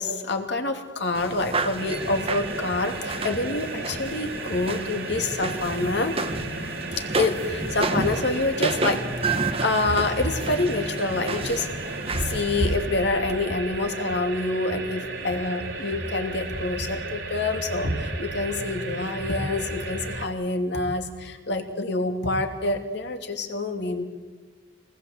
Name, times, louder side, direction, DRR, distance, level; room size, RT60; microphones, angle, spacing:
voice 1, 0.0-6.2 7.0-11.7 12.2-24.0, left 2 dB, 65° left, 4 dB, 2.9 m, -27 dB
sound 1, 1.2-12.8, right 3 dB, 30° right, 1.3 m, -31 dB
sound 2, 1.8-20.3, right 2 dB, 70° right, 3.1 m, -33 dB
27.0 x 19.5 x 8.1 m, 1.3 s
head